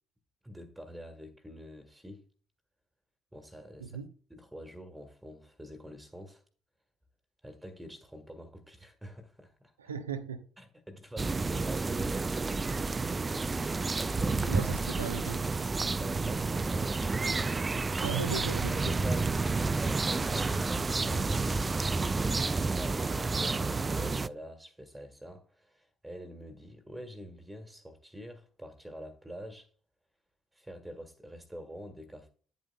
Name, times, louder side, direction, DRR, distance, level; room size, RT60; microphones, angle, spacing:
voice 1, 0.4-2.2 3.3-4.0 4.3-6.4 7.4-9.7 10.6-12.8 13.5-14.6 15.9-18.2 18.7-21.3 22.1-29.7 30.5-32.3, equal, 10° right, 1.5 m, -46 dB
voice 2, 9.8-10.4 14.4-15.4 18.0-18.8, right 6 dB, 85° right, 0.7 m, -36 dB
sound 1, 11.2-24.3, right 3 dB, 25° right, 0.4 m, -30 dB
10.0 x 8.2 x 2.2 m
figure-of-eight pair, 50°, 0 cm